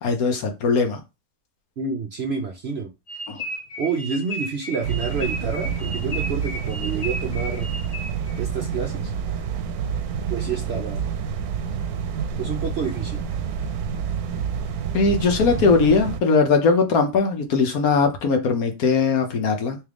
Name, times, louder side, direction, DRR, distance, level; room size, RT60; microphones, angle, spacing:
voice 1, 0.0-1.0 3.3-3.4 14.9-19.8, left 4 dB, 70° left, 1.3 m, -20 dB
voice 2, 1.8-2.9 3.8-7.8 8.4-9.1 10.3-11.0 12.4-13.2, right 5 dB, 60° right, 0.7 m, -28 dB
sound 1, 3.1-8.4, equal, 40° left, 1.0 m, -34 dB
sound 2, 4.8-16.2, right 7 dB, 75° right, 1.0 m, -28 dB
3.6 x 3.2 x 3.4 m
omnidirectional pair, 1.7 m